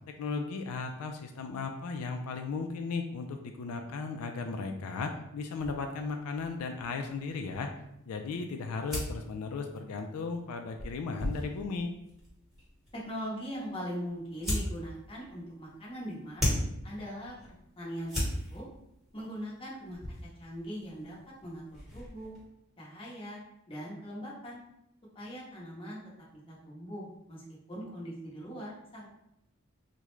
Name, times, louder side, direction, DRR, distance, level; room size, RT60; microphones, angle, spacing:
voice 1, 0.1-7.7 8.1-11.9, left 4 dB, 90° left, 5 dB, 0.3 m, -36 dB
sound 1, 5.6-22.4, left 1 dB, ahead, 1.1 m, -40 dB
voice 2, 12.9-16.6 16.8-17.4 17.8-18.1 18.5-18.6 19.1-21.2 21.4-21.6 21.9-22.4 22.8-23.4 23.7-24.6 25.1-26.0 26.5-29.1, equal, 25° left, -5 dB, 0.8 m, -40 dB
3.5 x 2.1 x 3.0 m, 0.81 s
head